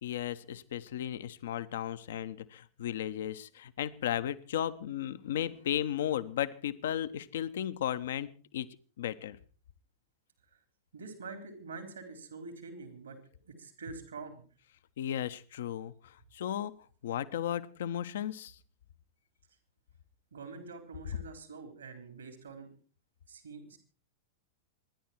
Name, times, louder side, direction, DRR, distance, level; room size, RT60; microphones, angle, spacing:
voice 1, 0.0-8.7 9.0-9.4 15.0-16.7 17.0-18.6, left 10 dB, 60° left, 13 dB, 1.0 m, -35 dB
voice 2, 10.9-13.2 13.4-14.4 20.3-22.7 23.3-23.8, right 4 dB, 70° right, 8 dB, 3.9 m, -45 dB
26.5 x 11.0 x 4.6 m, 0.40 s
figure-of-eight pair, 90°, 0 cm